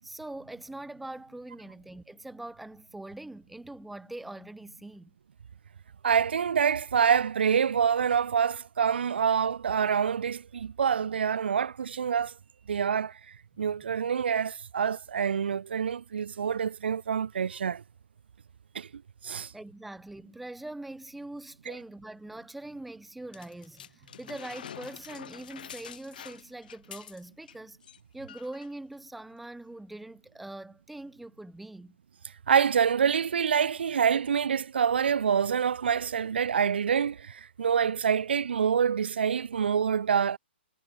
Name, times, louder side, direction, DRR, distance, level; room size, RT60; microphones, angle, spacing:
voice 1, 0.0-5.1 19.5-27.8 28.1-32.0, right 2 dB, ahead, 5.7 m, -43 dB
voice 2, 6.0-12.3 12.7-13.2 13.6-17.8 18.7-19.5 32.5-40.4, right 7 dB, 65° right, 1.6 m, -26 dB
sound 1, 23.3-27.6 27.8-28.0 28.3-28.7 29.4-29.5, left 9 dB, 50° left, 3.1 m, -46 dB
hypercardioid pair, 175°, 6 cm